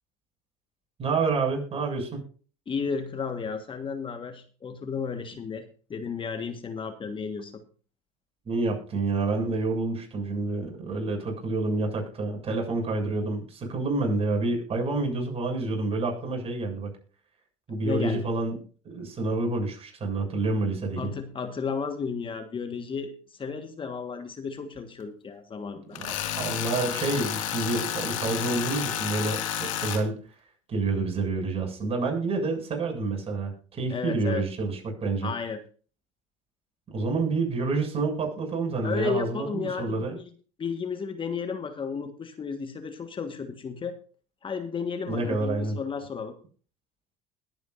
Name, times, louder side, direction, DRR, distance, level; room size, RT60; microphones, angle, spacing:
voice 1, 1.0-2.2 8.5-16.9 17.7-18.6 18.8-21.1 26.0-26.1 26.3-30.2 30.7-35.3 36.9-40.2 45.1-45.8, right 3 dB, 35° right, 1 dB, 7.3 m, -28 dB
voice 2, 2.7-7.5 17.8-18.3 21.0-26.0 33.9-34.4 35.2-35.6 38.8-40.3 40.6-44.0 44.4-46.3, left 5 dB, 30° left, 7 dB, 1.5 m, -33 dB
Tools, 26.0-30.0, left 10 dB, 80° left, 2.2 m, -31 dB
21.0 x 8.9 x 2.6 m, 0.40 s
hypercardioid pair, 75°, 17 cm